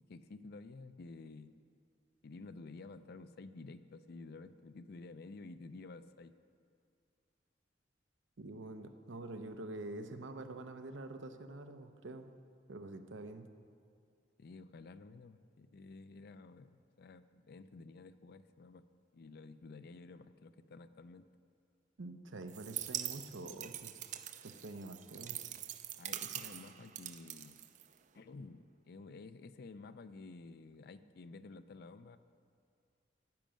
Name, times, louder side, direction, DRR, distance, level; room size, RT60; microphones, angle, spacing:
voice 1, 0.1-1.5 2.2-6.4 14.4-16.7 17.0-18.9 19.1-21.3 24.7-24.8 26.0-27.6 28.1-32.2, left 3 dB, 55° left, 12 dB, 0.4 m, -52 dB
voice 2, 8.4-12.3 12.7-13.5 22.0-24.1 24.4-25.4, right 2 dB, 85° right, 8 dB, 0.7 m, -46 dB
sound 1, 22.5-28.2, right 11 dB, 40° right, 0.4 m, -44 dB
10.5 x 6.3 x 8.8 m, 2.3 s
head